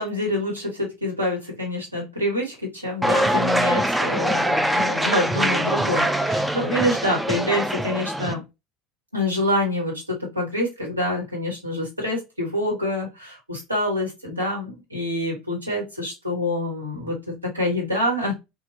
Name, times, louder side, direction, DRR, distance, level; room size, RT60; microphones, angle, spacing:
voice 1, 0.0-8.4 9.1-18.3, left 1 dB, 85° right, -2 dB, 1.1 m, -26 dB
sound 1, 3.0-8.3, right 1 dB, 5° right, 0.3 m, -23 dB
2.9 x 2.2 x 3.0 m, 0.23 s
figure-of-eight pair, 70°, 0 cm